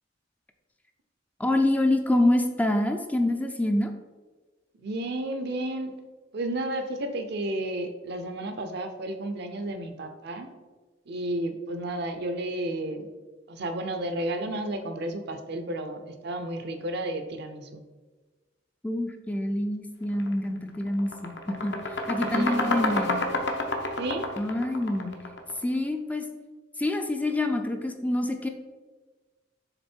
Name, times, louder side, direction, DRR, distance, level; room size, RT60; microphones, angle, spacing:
voice 1, 1.4-3.9 18.8-21.8 22.1-23.2 24.4-25.1 25.6-26.2 26.8-28.5, left 1 dB, 10° left, 5 dB, 0.4 m, -26 dB
voice 2, 4.8-6.0 6.3-10.5 11.1-13.1 13.5-17.8 22.3-22.8 24.0-24.3, right 1 dB, 60° right, 7 dB, 0.6 m, -32 dB
sound 1, 20.1-20.3 20.7-25.6, left 2 dB, 65° left, 0.8 m, -29 dB
6.8 x 3.6 x 4.4 m, 1.3 s
head